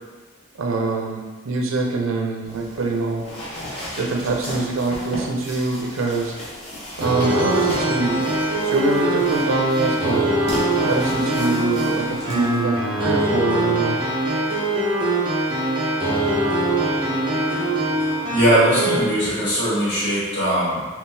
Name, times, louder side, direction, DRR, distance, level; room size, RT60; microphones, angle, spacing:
voice 1, 0.5-3.3 4.0-6.3 7.0-8.3 8.6-10.3 10.8-14.0, right 3 dB, 85° right, 1 dB, 0.5 m, -24 dB
sound 1, 2.4-12.6, left 1 dB, 30° left, 0.8 m, -36 dB
sound 2, 7.0-19.0, right 1 dB, 25° right, 0.5 m, -22 dB
voice 2, 18.3-20.9, equal, 55° left, -9 dB, 1.3 m, -20 dB
3.7 x 2.3 x 2.6 m, 1.3 s
head